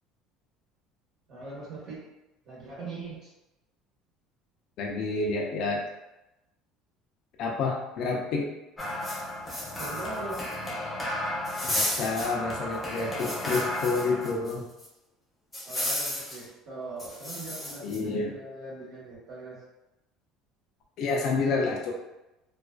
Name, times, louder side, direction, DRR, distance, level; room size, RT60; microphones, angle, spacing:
voice 1, 1.3-2.0 2.4-3.3 9.8-10.5 15.7-19.6, right 3 dB, 55° right, -8 dB, 1.0 m, -41 dB
voice 2, 4.8-5.8 7.4-8.5 11.6-14.6 17.8-18.4 21.0-21.9, left 3 dB, 60° left, -1 dB, 0.4 m, -29 dB
sound 1, 8.8-14.5 14.8-14.9 15.5-16.4 17.0-18.0, left 1 dB, 15° left, 0.7 m, -32 dB
2.4 x 2.3 x 2.2 m, 0.94 s
supercardioid pair, 115°, 0 cm